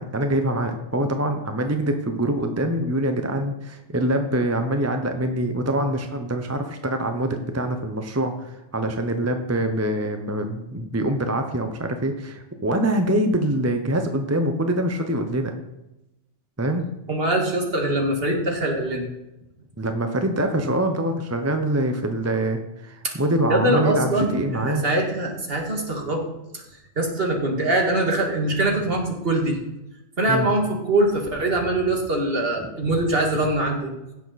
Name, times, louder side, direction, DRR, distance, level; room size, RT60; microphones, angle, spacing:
voice 1, 0.0-15.5 16.6-16.8 19.8-24.8 30.3-30.5 32.6-32.7, right 1 dB, 15° right, 6 dB, 0.8 m, -24 dB
voice 2, 17.1-19.1 23.0-23.1 23.5-26.2 26.5-26.6 27.0-29.6 30.2-33.9, right 1 dB, 55° right, 1 dB, 2.3 m, -23 dB
16.5 x 7.0 x 4.2 m, 0.93 s
omnidirectional pair, 1.2 m